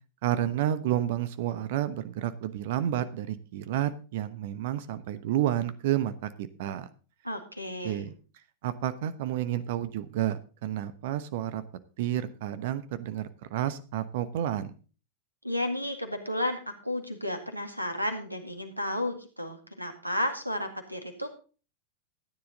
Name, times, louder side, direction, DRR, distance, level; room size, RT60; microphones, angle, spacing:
voice 1, 0.2-6.9 7.8-8.1 8.6-11.6 12.0-14.7, right 12 dB, 55° right, 13 dB, 1.0 m, -30 dB
voice 2, 7.2-8.1 15.4-21.3, left 1 dB, 90° right, 7 dB, 1.9 m, -32 dB
14.0 x 9.8 x 3.9 m, 0.37 s
figure-of-eight pair, 90°, 0 cm